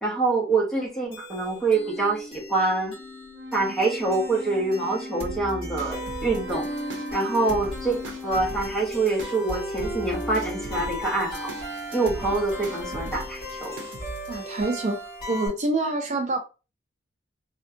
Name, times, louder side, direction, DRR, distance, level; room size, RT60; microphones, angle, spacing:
voice 1, 0.0-2.9 3.5-6.7 7.1-11.5 11.9-13.8, right 3 dB, 5° left, 0.8 m, -25 dB
sound 1, 1.1-15.5, left 1 dB, 30° left, 1.6 m, -36 dB
Wind instrument woodwind instrument, 3.3-8.1, equal, 65° right, 0.9 m, -40 dB
sound 2, 5.2-14.3, right 1 dB, 80° right, 0.6 m, -39 dB
voice 2, 14.3-15.0 15.3-16.4, right 2 dB, 40° right, 0.4 m, -26 dB
3.4 x 2.2 x 2.6 m
head